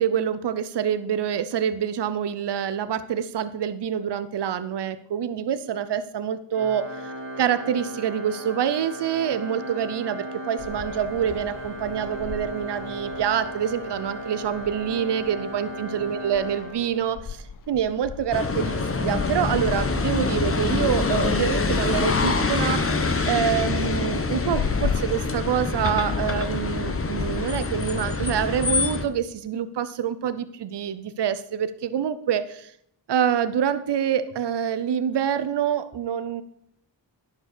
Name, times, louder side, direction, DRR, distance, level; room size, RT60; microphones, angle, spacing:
voice 1, 0.0-23.0 23.2-32.7 33.1-36.4, right 8 dB, 65° right, 13 dB, 0.7 m, -26 dB
Organ, 6.5-17.3, right 1 dB, 25° right, 2.5 m, -36 dB
sound 1, 10.6-28.5, left 7 dB, 50° left, 0.7 m, -38 dB
sound 2, 18.3-29.0, left 3 dB, 30° left, 1.1 m, -25 dB
11.0 x 5.2 x 6.6 m, 0.70 s
cardioid pair, 60°, 44 cm